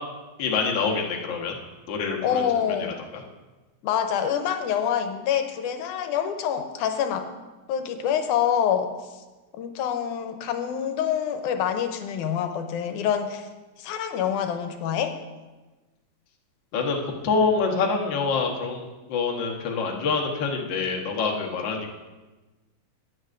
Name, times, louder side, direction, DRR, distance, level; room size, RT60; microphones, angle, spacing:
voice 1, 0.4-1.6 1.9-2.4 16.7-21.9, left 4 dB, 55° left, 0 dB, 1.3 m, -26 dB
voice 2, 2.2-3.0 3.8-7.3 7.7-8.9 9.6-13.5 13.8-15.2, left 8 dB, 85° left, 7 dB, 2.2 m, -26 dB
15.5 x 9.9 x 2.5 m, 1.2 s
omnidirectional pair, 3.5 m